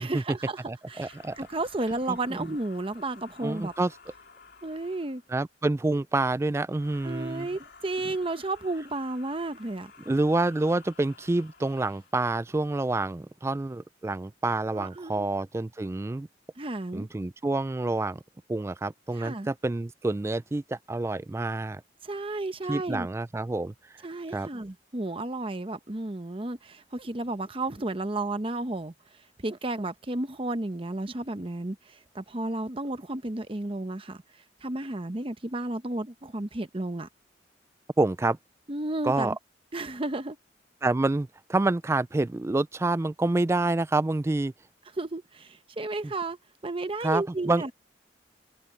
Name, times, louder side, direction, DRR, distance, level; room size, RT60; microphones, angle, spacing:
voice 1, 0.0-0.6 0.9-3.7 4.6-5.2 7.0-9.9 14.7-15.3 16.6-17.1 19.2-19.5 22.0-23.1 24.0-28.9 29.4-34.2 34.6-37.1 38.7-39.4 39.7-40.4 45.0-46.4 46.6-47.7, right 2 dB, 30° right, 0.9 m, -32 dB
voice 2, 0.7-1.4 2.1-2.5 3.4-3.9 5.3-7.5 10.1-16.3 16.9-18.2 18.5-21.8 22.7-23.7 24.3-24.5 38.0-38.4 39.0-39.3 40.8-44.5 47.0-47.6, right 2 dB, 15° right, 0.3 m, -28 dB
sound 1, 0.8-5.4 6.7-12.2, left 4 dB, 70° left, 4.4 m, -53 dB
head